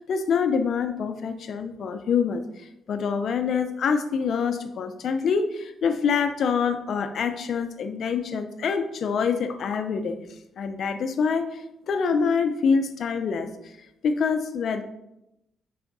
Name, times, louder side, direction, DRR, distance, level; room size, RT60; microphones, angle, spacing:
voice 1, 0.1-10.2 10.6-13.7 14.0-14.8, left 6 dB, 60° left, 8 dB, 0.6 m, -26 dB
5.9 x 5.0 x 3.9 m, 0.87 s
cardioid pair, 90°, 0 cm